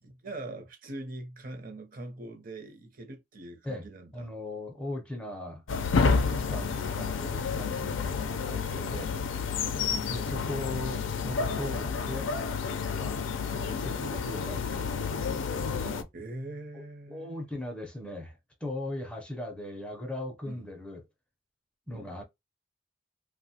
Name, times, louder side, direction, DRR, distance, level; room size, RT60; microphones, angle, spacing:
voice 1, 0.0-4.3 9.9-10.2 16.1-17.4 20.5-20.6 21.9-22.1, right 2 dB, 45° right, 0.6 m, -42 dB
voice 2, 4.1-9.1 10.1-12.3 12.9-13.2 13.5-15.1 15.7-16.1 16.7-16.8 17.1-21.1 21.9-22.2, left 1 dB, 5° left, 0.5 m, -39 dB
sound 1, 5.7-16.0, left 5 dB, 85° left, 0.4 m, -30 dB
2.9 x 2.1 x 2.7 m
head